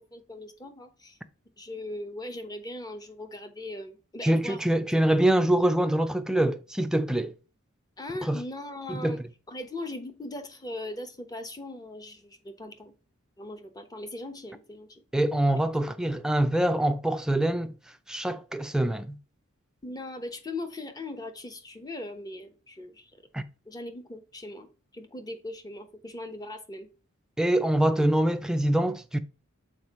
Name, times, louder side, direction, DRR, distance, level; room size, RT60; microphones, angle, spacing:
voice 1, 0.1-1.2 1.6-5.0 8.0-9.2 9.5-12.9 13.4-15.0 19.8-23.2 23.7-26.9, left 2 dB, 20° left, 1.0 m, -39 dB
voice 2, 4.2-7.3 8.2-8.4 8.9-9.2 15.1-17.7 18.1-19.2 23.3-23.4 27.4-29.2, right 1 dB, 5° right, 0.4 m, -24 dB
6.4 x 4.5 x 4.1 m
head